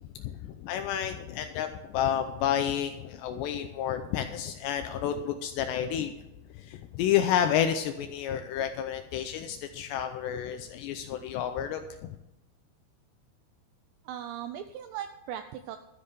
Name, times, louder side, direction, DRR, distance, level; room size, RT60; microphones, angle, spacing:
voice 1, 0.0-6.3 6.5-12.2, left 9 dB, 85° left, 7 dB, 2.5 m, -30 dB
voice 2, 14.1-15.8, right 10 dB, 85° right, 8 dB, 2.5 m, -38 dB
13.5 x 7.6 x 6.7 m, 0.89 s
omnidirectional pair, 5.7 m